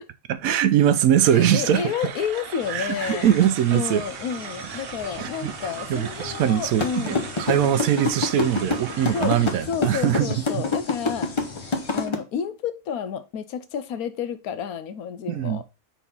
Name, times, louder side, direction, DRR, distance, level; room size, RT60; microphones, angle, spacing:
voice 1, 0.3-1.8 2.7-4.0 5.2-5.5 5.9-10.3 15.3-15.6, right 10 dB, 75° right, 1.0 m, -22 dB
sound 1, 1.2-9.6, right 9 dB, 90° right, 0.5 m, -39 dB
voice 2, 1.3-3.3 3.7-7.3 9.1-9.4 9.7-11.3 11.9-15.6, left 7 dB, 75° left, 1.1 m, -30 dB
sound 2, 2.6-12.1, left 4 dB, 50° left, 1.4 m, -41 dB
sound 3, 6.8-12.1, left 4 dB, 30° left, 0.5 m, -24 dB
4.4 x 4.0 x 5.4 m
omnidirectional pair, 1.6 m